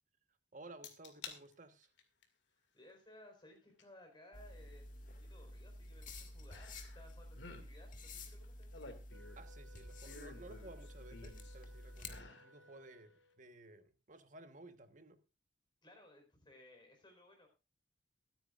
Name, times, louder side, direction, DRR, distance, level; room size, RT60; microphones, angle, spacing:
voice 1, 0.5-1.9 9.4-15.2, right 2 dB, 45° right, 1.3 m, -56 dB
sound 1, 0.8-1.4 1.8-2.2 3.8-3.9 6.5-7.1 7.3-7.7 8.4-9.5 10.0-11.6 12.0-12.5 12.9-13.0, left 4 dB, 75° left, 2.3 m, -52 dB
voice 2, 2.5-8.7 15.8-17.5, left 1 dB, 25° left, 4.5 m, -61 dB
sound 2, 4.3-12.2, left 2 dB, 45° left, 1.9 m, -51 dB
Wind instrument woodwind instrument, 9.1-13.5, equal, 85° right, 1.6 m, -64 dB
23.5 x 9.3 x 2.5 m
head